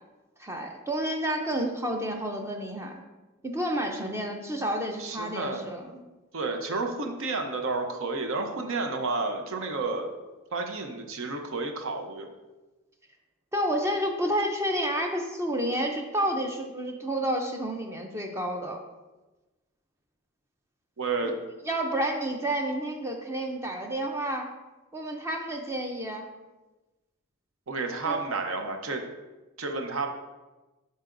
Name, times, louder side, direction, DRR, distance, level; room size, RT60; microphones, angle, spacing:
voice 1, 0.4-3.0 3.4-6.0 13.5-18.8 21.7-24.5 24.9-26.3 28.0-28.2, right 1 dB, 15° right, 2 dB, 0.5 m, -30 dB
voice 2, 5.0-5.7 6.3-10.1 10.5-12.3 21.0-21.3 27.7-29.0 29.6-30.1, right 3 dB, 70° right, 4 dB, 0.7 m, -31 dB
11.0 x 4.0 x 2.5 m, 1.1 s
head